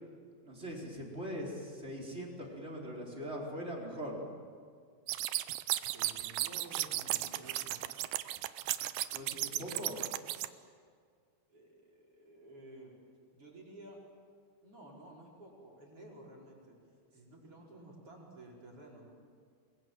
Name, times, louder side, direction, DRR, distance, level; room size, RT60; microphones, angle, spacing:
voice 1, 0.4-4.2 9.1-10.0, equal, 15° right, -2 dB, 4.5 m, -41 dB
sound 1, 5.1-10.5, right 15 dB, 80° right, 2.7 m, -35 dB
voice 2, 5.8-7.8 11.5-12.9 13.3-14.0 14.6-16.7 17.1-19.0, right 1 dB, 35° right, -3 dB, 5.8 m, -53 dB
29.0 x 22.0 x 7.7 m, 2.1 s
omnidirectional pair, 4.5 m